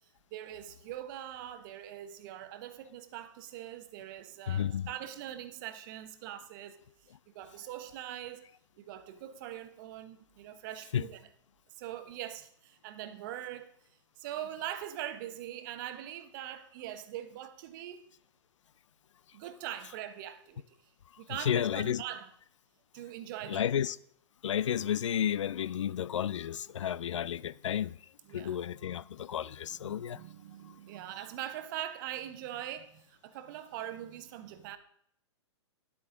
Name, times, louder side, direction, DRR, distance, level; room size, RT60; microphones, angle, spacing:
voice 1, 0.3-6.8 7.3-8.5 8.8-11.2 11.7-13.7 14.2-18.0 19.3-20.6 21.2-22.3 22.9-23.7 28.2-28.6 29.8-34.8, right 12 dB, 40° right, 0.9 m, -42 dB
voice 2, 4.5-4.9 10.9-11.0 21.3-22.0 23.5-24.0 24.4-28.0 28.3-30.2, left 9 dB, 80° left, 0.4 m, -32 dB
11.0 x 8.2 x 3.8 m
hypercardioid pair, 130°, 16 cm